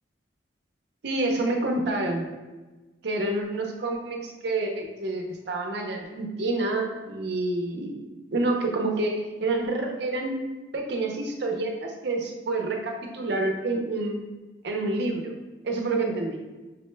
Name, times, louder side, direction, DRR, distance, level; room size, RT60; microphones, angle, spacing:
voice 1, 1.0-2.2 3.0-7.9 8.3-10.4 10.7-14.2 14.6-15.3 15.6-16.4, right 2 dB, 65° right, 2 dB, 0.6 m, -28 dB
5.4 x 2.2 x 3.2 m, 1.2 s
head